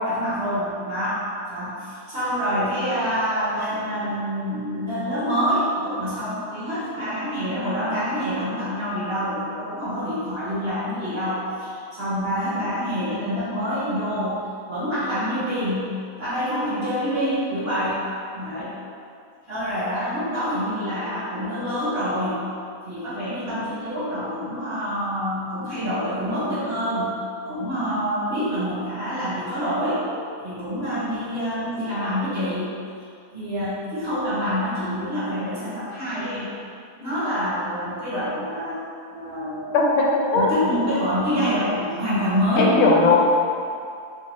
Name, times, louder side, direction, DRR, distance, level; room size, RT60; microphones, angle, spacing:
voice 1, 0.1-1.2 1.5-14.4 14.7-18.0 18.3-18.8 19.5-22.4 22.8-27.1 27.5-30.0 30.4-32.7 33.3-36.5 37.0-38.8 39.1-39.8 40.3-42.7, equal, 35° right, -13 dB, 1.2 m, -26 dB
voice 2, 39.7-40.5 42.6-43.2, left 3 dB, 85° left, -2 dB, 1.5 m, -18 dB
3.4 x 2.7 x 4.5 m, 2.4 s
omnidirectional pair, 2.2 m